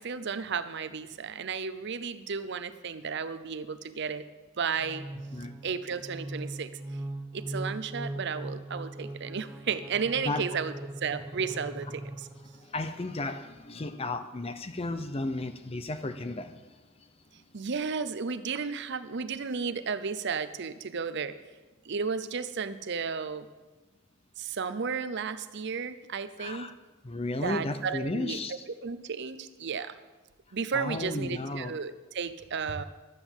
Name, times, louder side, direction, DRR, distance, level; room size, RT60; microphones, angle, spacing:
voice 1, 0.0-4.2 4.6-5.0 5.6-6.7 7.3-10.7 11.0-12.3 17.5-21.3 21.9-23.5 24.4-26.7 27.4-28.4 28.8-29.9 30.5-32.8, right 5 dB, 55° right, 12 dB, 0.6 m, -33 dB
sound 1, 4.8-12.7, right 1 dB, 10° right, 0.8 m, -40 dB
voice 2, 10.2-10.6 12.6-16.8 17.0-17.1 26.4-26.7 27.0-28.6 30.7-31.8, left 2 dB, 30° left, 10 dB, 0.7 m, -34 dB
12.5 x 8.1 x 7.2 m, 1.2 s
head